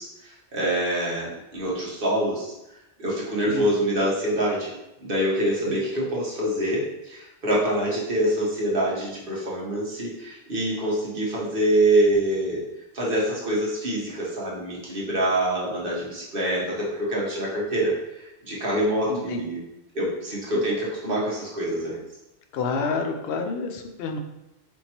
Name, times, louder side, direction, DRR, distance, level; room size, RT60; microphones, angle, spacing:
voice 1, 0.0-2.5 3.0-4.7 5.0-12.6 12.9-19.6 19.9-22.0, right 1 dB, 50° right, -5 dB, 1.2 m, -25 dB
voice 2, 19.1-19.4 20.6-20.7 22.5-24.2, left 4 dB, 65° left, 4 dB, 0.7 m, -29 dB
4.5 x 3.0 x 2.8 m, 0.90 s
omnidirectional pair, 1.2 m